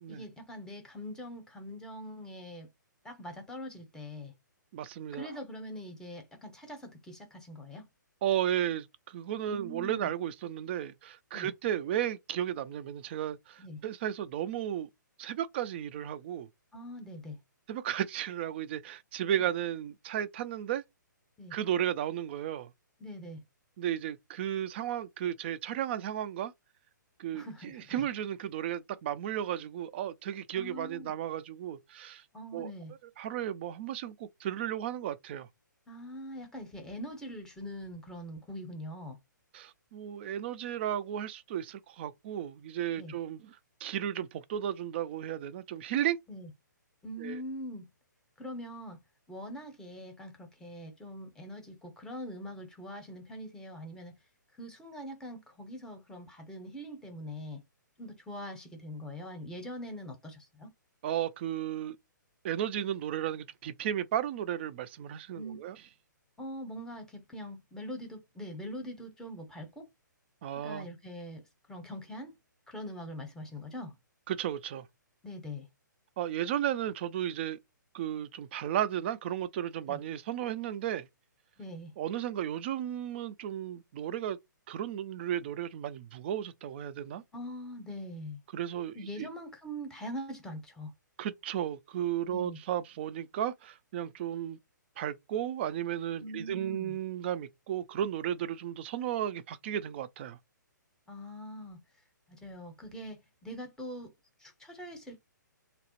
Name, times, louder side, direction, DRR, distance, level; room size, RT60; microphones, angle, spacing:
voice 1, 0.1-2.7 3.0-4.3 5.1-7.8 9.5-10.1 11.3-11.5 13.6-13.8 16.7-17.4 21.4-21.5 23.0-23.4 27.3-28.1 30.5-31.1 32.3-32.9 35.9-39.2 43.0-43.1 46.3-46.5 47.0-47.9 48.4-49.0 49.3-54.1 54.6-57.6 58.0-60.7 65.4-65.7 66.4-69.9 70.6-71.4 71.7-72.3 72.7-73.9 75.2-75.7 79.9-80.0 81.6-81.9 87.3-88.4 88.9-90.9 92.3-92.6 96.2-97.0 101.1-101.8 102.3-104.1 104.4-105.2, equal, 5° left, 0.7 m, -43 dB
voice 2, 4.7-5.3 8.2-14.9 15.2-16.5 17.7-20.8 21.5-22.7 23.8-26.5 27.2-32.2 32.5-32.7 33.2-35.5 39.5-46.2 47.2-47.4 61.0-62.0 62.4-65.8 70.4-70.9 74.3-74.9 76.2-77.6 77.9-81.1 82.0-84.4 84.7-87.2 88.5-89.3 91.2-94.6 95.0-100.4, right 10 dB, 35° right, 0.3 m, -34 dB
3.2 x 2.0 x 2.9 m
figure-of-eight pair, 130°, 10 cm